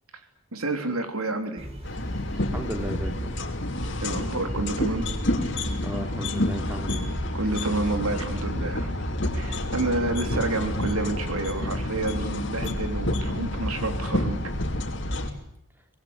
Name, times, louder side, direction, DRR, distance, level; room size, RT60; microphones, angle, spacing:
voice 1, 0.5-1.7 4.0-5.1 7.3-8.9 9.3-14.5, right 2 dB, 85° right, 6 dB, 3.5 m, -29 dB
sound 1, 1.6-15.4, equal, 30° right, 4.8 m, -37 dB
sound 2, 1.8-15.3, left 1 dB, 55° left, 2.9 m, -29 dB
voice 2, 2.5-3.3 5.8-7.0, equal, 10° right, 4 dB, 3.3 m, -34 dB
24.5 x 20.0 x 9.7 m, 0.73 s
head